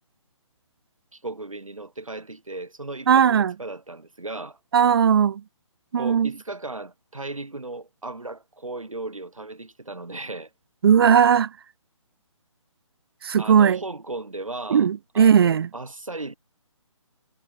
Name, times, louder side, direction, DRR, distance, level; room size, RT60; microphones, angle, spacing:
voice 1, 1.1-4.6 6.0-10.5 13.4-14.9 15.1-16.4, right 2 dB, 85° right, 7.0 m, -36 dB
voice 2, 3.1-3.5 4.7-5.4 5.9-6.3 10.8-11.5 13.2-13.8 14.7-15.7, right 8 dB, 45° right, 1.1 m, -18 dB
figure-of-eight pair, 145°, 17 cm